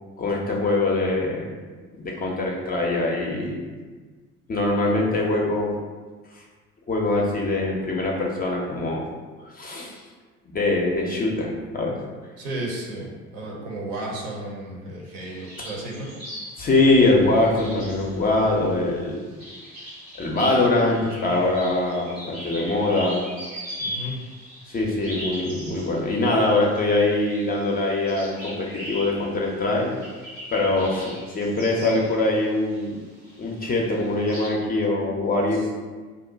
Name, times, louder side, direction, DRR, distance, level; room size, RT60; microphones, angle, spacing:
voice 1, 0.2-1.5 1.9-3.6 4.5-5.7 6.9-9.0 9.5-10.0 10.5-12.0 16.6-19.2 20.2-23.2 24.7-29.9 30.5-33.0 33.4-35.7, left 2 dB, 25° left, -2 dB, 0.5 m, -23 dB
voice 2, 12.4-16.1 23.8-24.2 35.5-35.7, right 1 dB, 60° right, -2 dB, 0.8 m, -33 dB
sound 1, 15.2-32.9 33.2-34.5, equal, 85° right, 1.2 m, -40 dB
2.6 x 2.1 x 3.8 m, 1.4 s
figure-of-eight pair, 50°, 38 cm